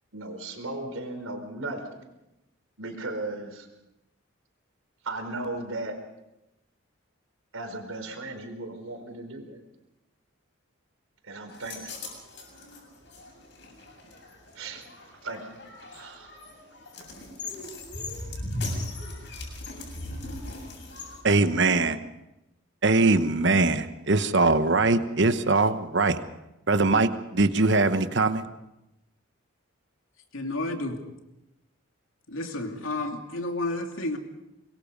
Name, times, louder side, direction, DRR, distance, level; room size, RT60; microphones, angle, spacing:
voice 1, 0.1-2.1 2.8-3.7 5.0-6.0 7.5-9.6 11.2-12.0 14.5-15.6 15.9-16.3, right 2 dB, 90° right, 6 dB, 4.6 m, -36 dB
sound 1, 11.5-21.2, left 2 dB, 55° left, 7.4 m, -38 dB
voice 2, 21.2-22.0 22.8-26.2 26.7-28.4, right 3 dB, 55° right, 10 dB, 1.1 m, -22 dB
voice 3, 30.3-31.0 32.3-34.2, left 2 dB, 75° left, 4 dB, 2.8 m, -31 dB
25.0 x 22.0 x 5.4 m, 0.92 s
head